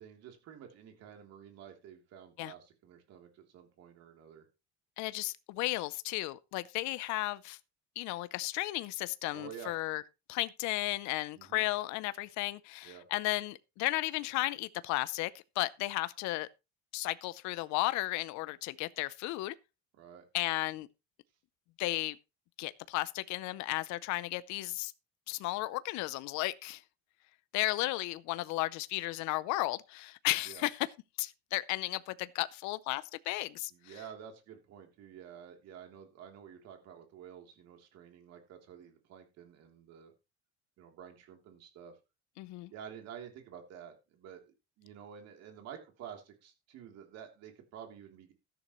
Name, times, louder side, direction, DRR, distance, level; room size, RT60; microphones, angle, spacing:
voice 1, 0.0-4.5 9.3-9.7 11.3-11.6 12.8-13.1 19.9-20.2 30.4-30.7 33.7-40.1 40.8-42.0 42.7-48.3, right 8 dB, 60° right, 3.2 m, -50 dB
voice 2, 5.0-7.6 8.0-10.0 10.3-16.5 16.9-19.5 20.3-20.9 21.8-22.2 22.6-24.9 25.3-26.8 27.5-30.9 31.2-33.7 42.4-42.7, left 19 dB, 75° left, 0.7 m, -34 dB
13.0 x 10.5 x 3.1 m
cardioid pair, 160°, 29 cm